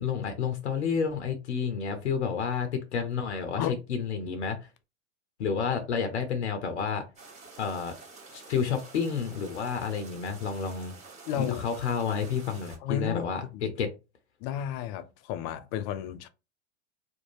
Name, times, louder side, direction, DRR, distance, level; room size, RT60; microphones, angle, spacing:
voice 1, 0.0-3.6 3.9-4.6 5.4-7.0 7.6-7.9 8.3-10.9 11.3-13.9, left 6 dB, 80° left, 0.7 m, -30 dB
sound 1, 7.2-12.8, right 4 dB, 20° right, 1.1 m, -49 dB
voice 2, 11.3-11.6 12.8-13.3 13.5-13.7 14.4-16.3, left 10 dB, 40° left, 0.4 m, -32 dB
2.6 x 2.1 x 3.1 m
hypercardioid pair, 95°, 34 cm